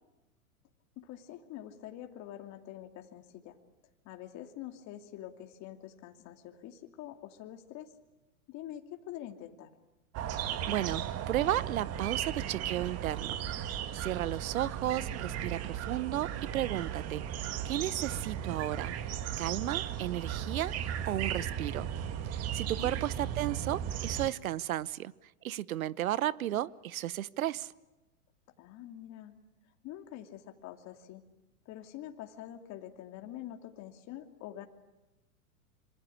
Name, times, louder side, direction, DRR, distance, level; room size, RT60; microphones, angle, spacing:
voice 1, 1.0-3.6 4.0-7.9 8.5-9.7 22.8-23.1 28.6-29.4 29.8-31.2 31.6-34.7, left 12 dB, 40° left, 5 dB, 2.8 m, -46 dB
sound 1, 10.1-24.3, right 9 dB, 35° right, 1.8 m, -36 dB
voice 2, 10.4-17.2 17.6-18.9 19.4-21.9 22.2-25.1 25.4-27.7, right 13 dB, 70° right, 20 dB, 1.0 m, -34 dB
26.5 x 26.0 x 8.6 m, 1.0 s
hypercardioid pair, 110°, 44 cm